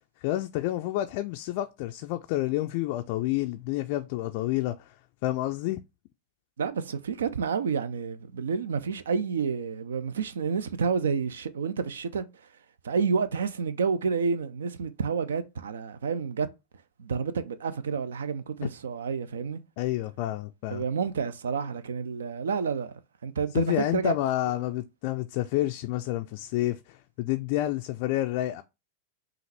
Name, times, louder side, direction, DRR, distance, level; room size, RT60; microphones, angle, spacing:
voice 1, 0.2-5.0 5.2-5.8 19.8-20.8 23.5-28.6, left 15 dB, 45° left, 0.3 m, -29 dB
voice 2, 6.6-12.2 12.8-16.5 17.0-19.6 20.7-22.9 23.2-24.1, right 5 dB, 65° right, 0.5 m, -29 dB
5.6 x 2.5 x 3.3 m
figure-of-eight pair, 90°, 0 cm